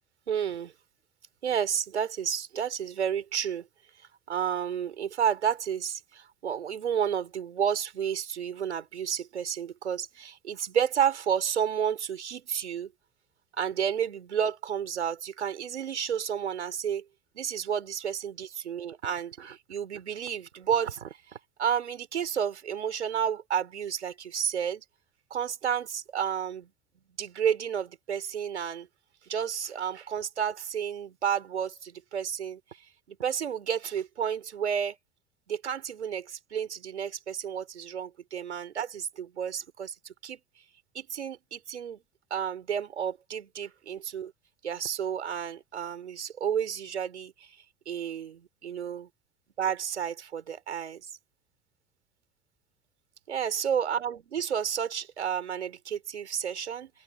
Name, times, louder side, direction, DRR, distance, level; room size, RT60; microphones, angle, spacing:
voice 1, 0.3-0.7 1.4-3.7 4.3-12.9 13.6-17.0 17.4-24.8 25.3-26.7 27.2-28.9 29.3-32.6 33.1-35.0 35.5-40.4 40.9-42.0 42.3-44.3 44.6-47.3 47.9-49.1 49.6-51.1 53.3-56.9, right 8 dB, 80° right, 5.2 m, -31 dB
open air
figure-of-eight pair, 75°, 33 cm